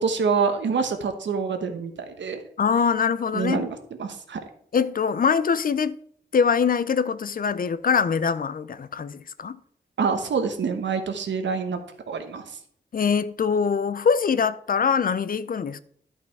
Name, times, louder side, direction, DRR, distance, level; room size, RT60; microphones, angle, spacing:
voice 1, 0.0-2.4 3.3-4.5 10.0-11.8 12.1-12.5, right 5 dB, 85° right, 1.2 m, -26 dB
voice 2, 2.6-3.6 4.7-6.0 6.3-9.6 12.9-15.8, left 6 dB, 50° left, 0.5 m, -23 dB
11.5 x 5.7 x 4.7 m
wide cardioid pair, 100°, 18 cm